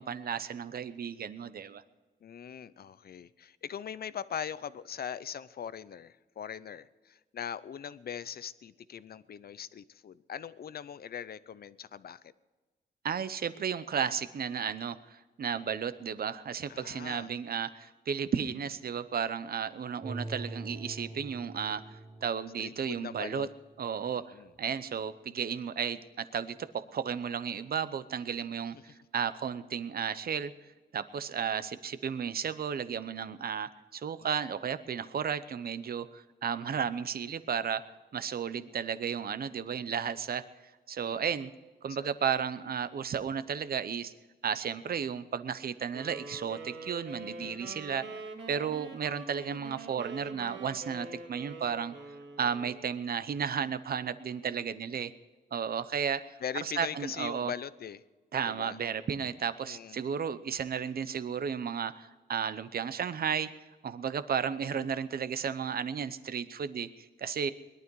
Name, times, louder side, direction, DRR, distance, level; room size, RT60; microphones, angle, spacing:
voice 1, 0.0-1.8 13.0-23.5 23.8-30.5 30.9-37.8 38.1-40.4 40.9-41.5 41.8-44.1 44.4-48.0 48.5-52.0 52.4-55.1 55.5-56.2 56.5-57.5 58.3-63.5 63.8-67.5, right 7 dB, 55° right, 13 dB, 0.8 m, -33 dB
voice 2, 2.2-12.2 16.7-17.3 22.6-23.5 24.1-24.5 28.8-28.9 41.0-41.3 42.0-42.1 47.4-47.8 56.4-58.0 58.4-58.8 59.7-60.0 64.8-64.9, left 8 dB, 55° left, 16 dB, 0.6 m, -41 dB
sound 1, 20.0-24.0 24.6-24.7, right 2 dB, 30° right, 1.5 m, -44 dB
sound 2, 45.9-52.9, right 3 dB, 90° right, 2.8 m, -45 dB
21.0 x 12.0 x 4.7 m, 1.3 s
wide cardioid pair, 155°, 18 cm